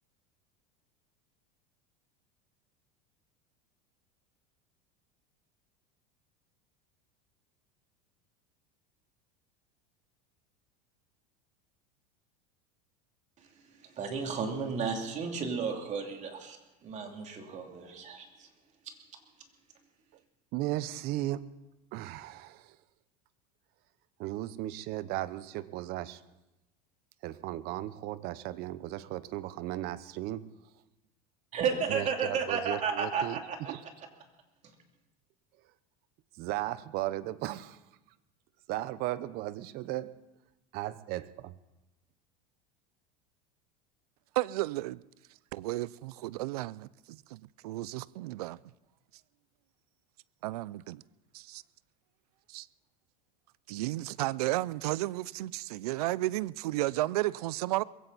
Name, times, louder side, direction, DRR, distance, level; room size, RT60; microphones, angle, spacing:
voice 1, 13.4-16.6 16.8-18.5 18.8-19.0 31.5-33.7, right 5 dB, 40° right, 3.1 m, -33 dB
voice 2, 20.5-21.5 21.9-22.8 24.2-26.2 27.2-30.4 31.9-33.4 33.7-33.8 36.4-37.8 38.7-40.1 40.7-41.5, right 15 dB, 55° right, 0.9 m, -36 dB
voice 3, 44.4-45.0 45.5-48.6 50.4-51.0 51.3-51.6 52.5-52.7 53.7-57.8, right 18 dB, 80° right, 0.5 m, -33 dB
21.5 x 16.0 x 4.2 m
supercardioid pair, 115°, 19 cm